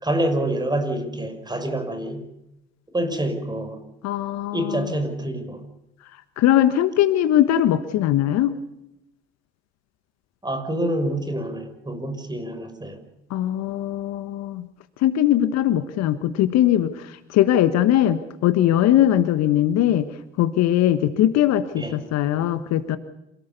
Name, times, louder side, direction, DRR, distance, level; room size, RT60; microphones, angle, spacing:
voice 1, 0.0-2.2 2.9-3.8 4.5-5.6 10.4-13.0 21.8-22.0, right 1 dB, 10° right, 8 dB, 5.8 m, -27 dB
voice 2, 4.0-4.9 6.4-8.5 13.3-14.7 15.0-20.1 20.4-23.0, left 12 dB, 50° left, 11 dB, 1.5 m, -20 dB
27.5 x 18.0 x 7.0 m, 0.87 s
figure-of-eight pair, 65°, 34 cm